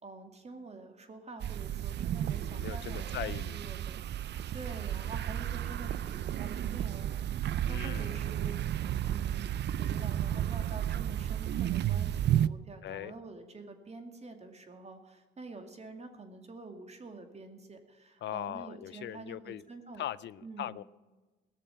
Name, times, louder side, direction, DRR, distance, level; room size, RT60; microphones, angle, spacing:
voice 1, 0.0-4.2 4.5-8.6 9.0-9.5 9.8-20.0 20.4-20.8, right 3 dB, 35° right, 5 dB, 2.3 m, -47 dB
sound 1, 1.4-12.5, right 11 dB, 60° right, 0.5 m, -33 dB
voice 2, 2.5-3.6 7.7-8.1 12.8-13.1 18.2-19.6 20.0-20.8, left 12 dB, 65° left, 18 dB, 0.5 m, -40 dB
18.0 x 6.8 x 9.0 m, 1.2 s
cardioid pair, 90°, 20 cm